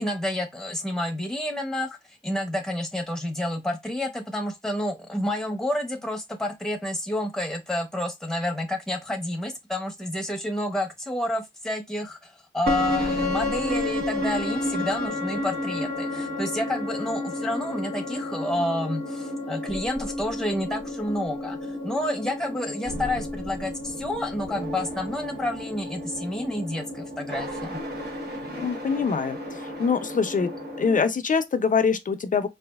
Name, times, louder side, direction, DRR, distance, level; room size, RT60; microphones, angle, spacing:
voice 1, 0.0-27.8, left 1 dB, 5° left, 0.7 m, -29 dB
sound 1, 12.7-31.0, left 1 dB, 55° right, 1.1 m, -31 dB
voice 2, 28.6-30.5 30.8-32.5, left 5 dB, 40° left, 0.5 m, -24 dB
4.0 x 2.4 x 2.3 m
wide cardioid pair, 160°, 20 cm